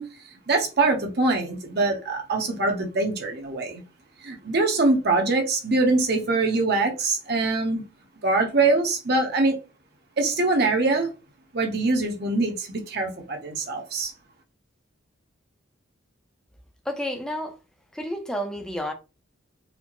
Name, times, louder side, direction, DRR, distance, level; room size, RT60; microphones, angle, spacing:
voice 1, 0.0-3.8 4.2-7.8 8.2-9.6 10.2-11.1 11.5-14.1, right 3 dB, 50° right, 0.9 m, -23 dB
voice 2, 16.9-17.6 17.9-18.9, equal, 5° left, 0.5 m, -30 dB
4.2 x 2.1 x 3.0 m
head